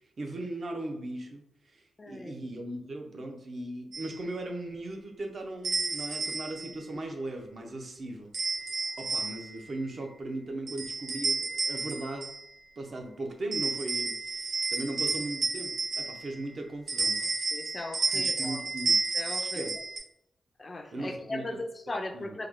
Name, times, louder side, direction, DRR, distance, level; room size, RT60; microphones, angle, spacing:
voice 1, 0.2-1.4 1.7-8.3 8.7-12.3 12.8-17.3 18.1-19.0 19.4-19.7 20.9-21.6 22.1-22.4, right 2 dB, 45° right, 3 dB, 0.5 m, -38 dB
voice 2, 2.0-2.5 17.5-18.6 19.1-19.7 20.6-22.5, left 2 dB, 25° left, 4 dB, 0.3 m, -38 dB
sound 1, 3.9-4.1 5.6-6.7 8.3-9.6 10.7-12.5 13.5-16.4 16.9-20.0, right 4 dB, 65° right, 0.9 m, -31 dB
3.2 x 2.1 x 3.5 m, 0.79 s
wide cardioid pair, 170°, 0 cm